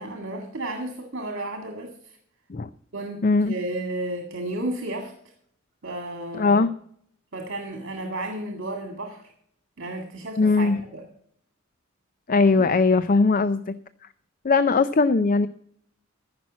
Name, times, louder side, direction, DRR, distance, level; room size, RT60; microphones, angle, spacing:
voice 1, 0.0-2.2 2.9-5.1 5.8-6.5 7.3-9.2 9.8-11.0 12.6-12.7, right 1 dB, 60° right, 4 dB, 2.0 m, -33 dB
voice 2, 3.2-3.5 6.3-6.7 10.4-10.8 12.3-13.7 14.4-15.5, left 3 dB, 45° left, 13 dB, 0.5 m, -20 dB
15.0 x 6.0 x 7.3 m, 0.65 s
head